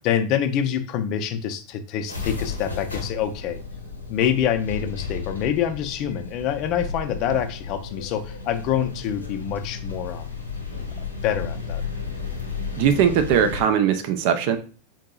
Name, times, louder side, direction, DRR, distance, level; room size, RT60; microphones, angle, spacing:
voice 1, 0.0-3.6 4.1-10.3 11.2-11.8, left 9 dB, 45° left, 8 dB, 0.4 m, -26 dB
sound 1, 2.1-13.6, left 5 dB, 85° left, 0.7 m, -33 dB
voice 2, 12.8-14.6, right 8 dB, 50° right, 8 dB, 0.5 m, -20 dB
3.8 x 2.7 x 2.3 m, 0.36 s
figure-of-eight pair, 85°, 0 cm